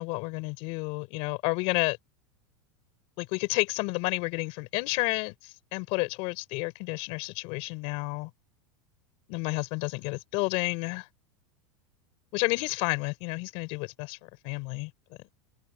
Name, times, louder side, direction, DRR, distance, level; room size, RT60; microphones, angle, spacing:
voice 1, 0.0-2.0 3.2-8.3 9.3-11.1 12.3-14.2 14.4-14.9, left 27 dB, 40° left, 5.5 m, -30 dB
supercardioid pair, 170°, 15 cm